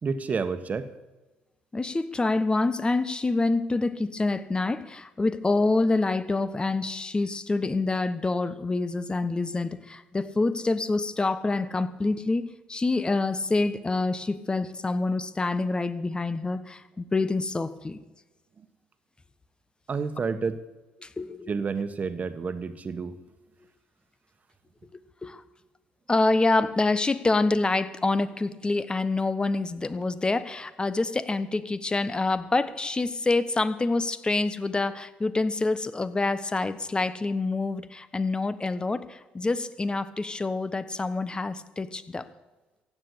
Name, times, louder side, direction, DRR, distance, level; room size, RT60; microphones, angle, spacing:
voice 1, 0.0-0.9 18.6-18.7 19.9-20.6 21.5-23.2, right 5 dB, 40° right, 10 dB, 1.5 m, -30 dB
voice 2, 1.7-18.0 21.0-21.5 25.2-25.4 26.1-42.2, left 3 dB, 20° left, 13 dB, 1.2 m, -26 dB
15.5 x 8.8 x 8.5 m, 1.2 s
hypercardioid pair, 55°, 4 cm